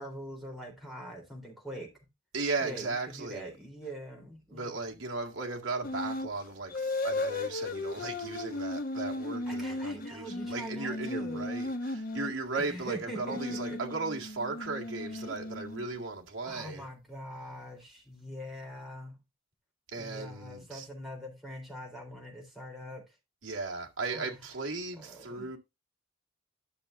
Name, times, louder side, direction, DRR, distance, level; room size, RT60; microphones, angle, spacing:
voice 1, 0.0-1.9 2.6-4.7 9.5-11.5 12.5-13.8 16.4-19.2 20.0-23.0 24.1-24.3 25.0-25.5, right 1 dB, ahead, 3.6 m, -43 dB
voice 2, 2.3-3.5 4.5-16.8 19.9-20.9 23.4-25.6, right 3 dB, 65° right, 2.1 m, -36 dB
sound 1, 5.8-6.3 6.7-12.4 13.1-16.0, left 2 dB, 45° left, 0.9 m, -36 dB
12.5 x 6.5 x 2.6 m
head